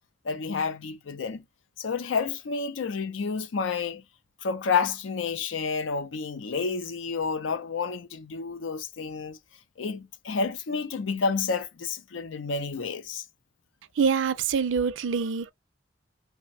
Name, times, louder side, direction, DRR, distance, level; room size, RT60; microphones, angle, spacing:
voice 1, 0.2-1.4 1.8-4.0 4.4-9.4 9.8-13.2, left 5 dB, 85° left, 0.5 m, -30 dB
voice 2, 14.0-15.5, right 6 dB, 80° right, 0.5 m, -25 dB
3.3 x 2.1 x 2.5 m
head